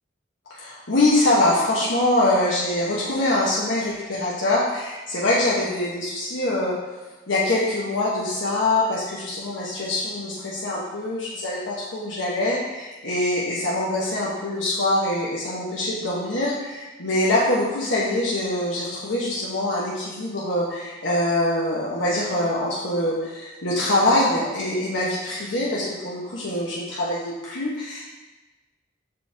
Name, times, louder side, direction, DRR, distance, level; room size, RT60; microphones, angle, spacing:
voice 1, 0.5-6.8 7.3-28.0, left 1 dB, 85° left, -6 dB, 1.1 m, -24 dB
6.6 x 5.0 x 3.4 m, 1.2 s
head